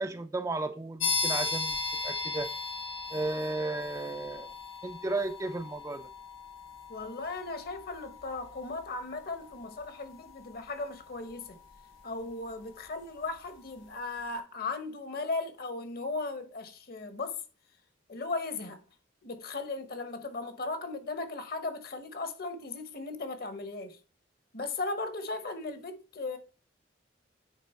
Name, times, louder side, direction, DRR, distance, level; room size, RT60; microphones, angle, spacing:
voice 1, 0.0-1.8 2.0-2.5 3.1-4.5 4.8-6.1, right 2 dB, 15° right, 0.3 m, -34 dB
sound 1, 1.0-13.5, left 4 dB, 85° left, 1.3 m, -38 dB
voice 2, 6.9-11.6 12.0-17.4 18.1-18.8 19.2-24.0 24.5-26.4, left 3 dB, 50° left, 1.0 m, -37 dB
9.2 x 3.8 x 4.3 m
head